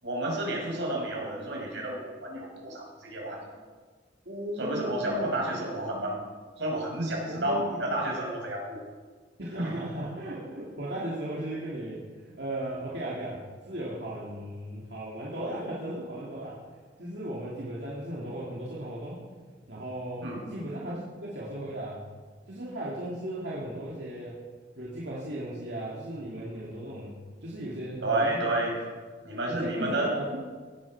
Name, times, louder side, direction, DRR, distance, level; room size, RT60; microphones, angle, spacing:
voice 1, 0.0-3.5 4.6-6.2 6.6-8.8 9.6-9.8 20.2-20.4 28.0-28.8 29.2-30.1, right 1 dB, 90° right, -2 dB, 5.1 m, -30 dB
voice 2, 4.3-5.4 7.3-7.8 9.4-16.6 17.0-19.2 19.7-22.1 22.5-24.4 24.8-28.5 29.5-30.4, right 1 dB, 70° right, -6 dB, 2.7 m, -36 dB
17.0 x 9.3 x 6.0 m, 1.5 s
head